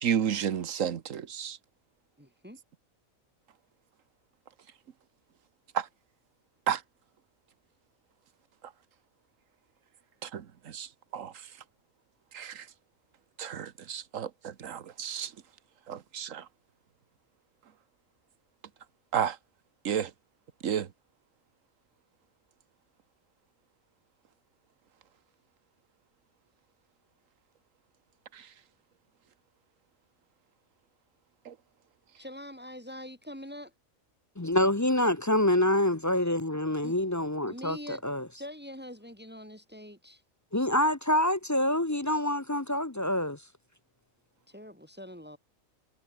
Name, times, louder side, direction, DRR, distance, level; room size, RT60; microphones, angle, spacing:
voice 1, 0.0-1.6 5.7-5.9 6.7-6.8 10.2-11.3 12.3-12.6 13.4-15.3 15.9-16.4 19.1-19.4 19.8-20.1 20.6-20.9 28.3-28.5 31.5-31.6, right 8 dB, 70° right, 1.4 m, -32 dB
voice 2, 2.2-2.6 32.2-33.7 36.8-36.9 37.5-38.0 38.4-40.2 44.5-45.4, equal, 5° right, 3.8 m, -44 dB
voice 3, 34.4-38.3 40.5-43.4, left 1 dB, 20° left, 0.6 m, -26 dB
omnidirectional pair, 1.4 m